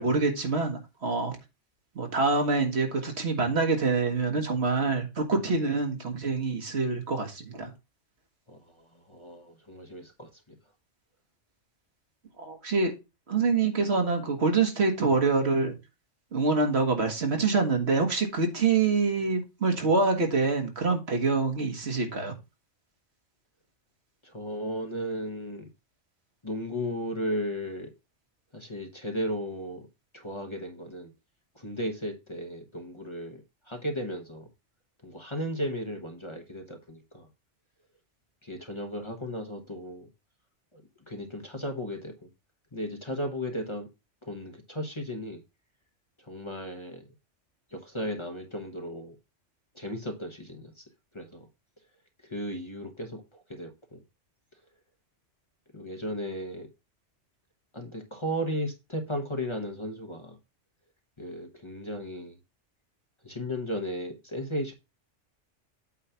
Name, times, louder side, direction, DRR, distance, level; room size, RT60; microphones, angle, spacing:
voice 1, 0.0-1.4 2.0-7.7 12.4-12.9 13.3-15.8 16.3-22.3, right 4 dB, 60° right, 4 dB, 1.7 m, -26 dB
voice 2, 8.5-10.6 24.2-25.7 26.4-27.9 28.5-29.9 30.1-31.1 31.5-34.5 35.0-37.3 38.4-40.1 40.7-40.8 41.1-42.3 42.7-43.9 44.2-45.4 46.2-47.1 47.7-49.1 49.7-50.8 51.1-51.5 52.2-54.0 55.7-56.7 57.7-60.4 61.2-62.4 63.2-64.7, equal, 25° left, 3 dB, 1.2 m, -35 dB
8.5 x 3.2 x 5.7 m, 0.26 s
omnidirectional pair, 1.3 m